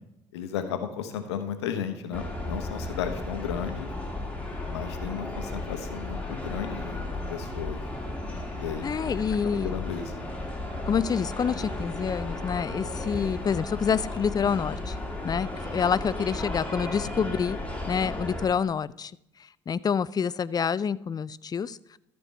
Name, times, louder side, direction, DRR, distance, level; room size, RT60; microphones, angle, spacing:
voice 1, 0.3-3.9 4.7-7.0 7.3-7.8 8.6-8.9 9.4-10.1 12.7-12.8 17.0-17.1, left 8 dB, 80° left, 8 dB, 0.9 m, -34 dB
sound 1, 2.1-18.4, left 2 dB, 10° left, 2.3 m, -34 dB
voice 2, 8.8-9.7 10.9-14.9 15.2-17.6 17.9-19.1 19.7-22.0, left 7 dB, 30° left, 19 dB, 0.4 m, -27 dB
13.0 x 4.6 x 5.3 m, 0.78 s
hypercardioid pair, 55°, 14 cm